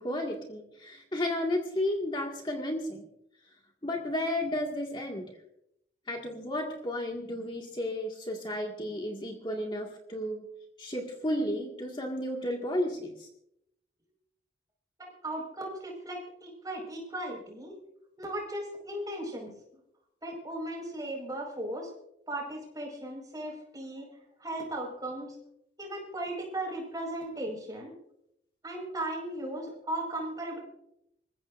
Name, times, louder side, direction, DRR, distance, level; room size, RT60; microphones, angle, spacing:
voice 1, 0.0-3.0 3.8-5.3 6.1-10.4 10.8-13.3, left 1 dB, 25° left, 0 dB, 2.0 m, -33 dB
voice 2, 15.2-17.7 18.2-19.5 20.2-21.9 22.3-24.1 24.4-25.3 25.8-27.9 28.6-30.6, right 1 dB, 20° right, 0 dB, 5.2 m, -37 dB
27.0 x 15.5 x 2.6 m, 0.78 s
head